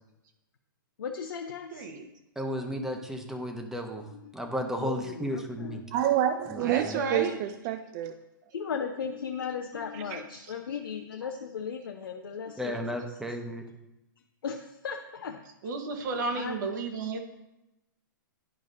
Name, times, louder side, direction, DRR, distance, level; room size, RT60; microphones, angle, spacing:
voice 1, 1.0-1.9 4.1-4.4 4.8-6.1 7.0-7.4 8.5-13.1 14.4-15.8 16.2-16.6, left 6 dB, 80° left, 3 dB, 0.6 m, -37 dB
voice 2, 1.7-2.1 6.6-7.3 15.6-17.2, right 4 dB, 60° right, 4 dB, 1.2 m, -32 dB
voice 3, 2.4-4.1 4.3-5.8 6.5-7.0 11.2-11.3 12.6-13.6, equal, 5° right, 4 dB, 0.9 m, -34 dB
voice 4, 5.9-8.2 10.1-10.2, right 11 dB, 40° right, 9 dB, 0.4 m, -28 dB
10.5 x 4.8 x 2.7 m, 0.93 s
hypercardioid pair, 125°, 11 cm